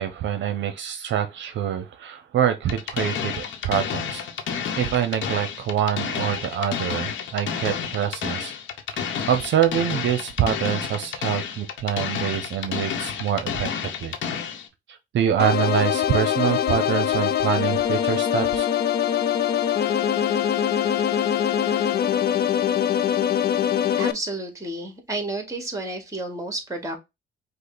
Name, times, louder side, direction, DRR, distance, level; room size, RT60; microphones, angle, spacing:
voice 1, 0.0-4.2 4.8-8.5 8.9-14.1 14.9-18.7, right 9 dB, 70° right, 0.7 m, -25 dB
sound 1, 2.7-14.7, left 7 dB, 75° left, 0.9 m, -30 dB
sound 2, 15.4-24.1, left 10 dB, 55° left, 0.5 m, -23 dB
voice 2, 24.0-27.0, right 2 dB, 15° right, 1.8 m, -31 dB
5.3 x 2.1 x 4.0 m
cardioid pair, 90°, 20 cm